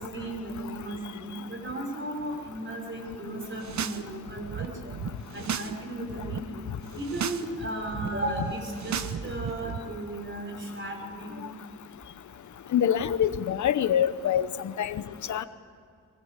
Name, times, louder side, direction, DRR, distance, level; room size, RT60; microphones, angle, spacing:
voice 1, 0.0-4.9 5.3-6.6 7.0-11.4, right 1 dB, 40° right, 2 dB, 5.5 m, -35 dB
sound 1, 3.5-4.0 4.3-5.7 6.0-6.4 6.9-7.4 7.7-9.8, right 8 dB, 70° right, 1.0 m, -35 dB
voice 2, 12.7-15.0 15.3-15.4, left 9 dB, 75° left, 13 dB, 1.0 m, -25 dB
23.0 x 19.0 x 8.2 m, 2.3 s
cardioid pair, 100°, 29 cm